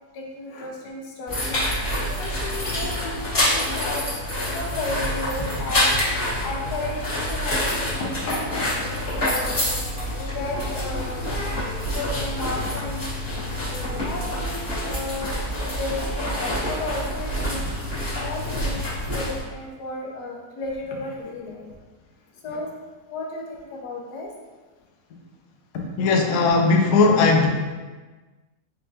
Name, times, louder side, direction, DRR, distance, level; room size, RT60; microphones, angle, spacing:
voice 1, 0.1-1.6 2.2-4.1 4.5-6.0 6.4-8.7 9.2-9.8 10.3-11.2 11.9-13.1 13.7-21.7 22.4-22.7 23.1-24.3 25.7-25.9, left 2 dB, 85° left, 0 dB, 1.3 m, -33 dB
sound 1, 1.3-19.4, left 1 dB, 40° left, 1.4 m, -27 dB
voice 2, 26.0-27.5, left 3 dB, 70° left, 2 dB, 0.8 m, -18 dB
4.3 x 3.7 x 2.7 m, 1.3 s
omnidirectional pair, 1.7 m